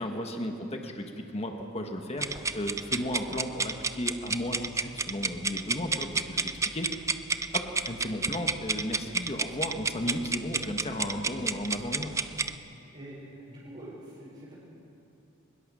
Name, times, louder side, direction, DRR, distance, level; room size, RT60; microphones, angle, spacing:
voice 1, 0.0-2.3 2.5-6.9 7.5-12.2, left 1 dB, 30° left, 3 dB, 1.5 m, -34 dB
sound 1, 2.2-12.5, right 4 dB, 15° right, 0.6 m, -31 dB
voice 2, 13.5-14.5, right 1 dB, 35° right, -10 dB, 5.5 m, -45 dB
23.0 x 20.5 x 6.3 m, 2.8 s
head